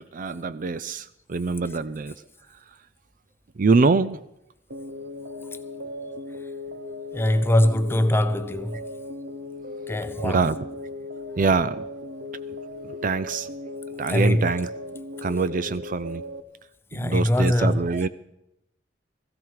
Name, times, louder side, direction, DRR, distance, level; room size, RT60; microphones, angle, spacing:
voice 1, 0.0-2.1 3.6-4.2 10.2-10.6 11.4-11.8 13.0-13.5 14.0-14.7 15.2-16.2 16.9-18.1, right 4 dB, 50° right, 0.5 m, -24 dB
sound 1, 4.7-16.4, left 2 dB, 80° right, 1.1 m, -37 dB
voice 2, 7.1-8.8 9.9-10.5 14.1-14.5 16.9-17.9, left 1 dB, 15° left, 0.7 m, -22 dB
17.0 x 15.0 x 4.8 m
head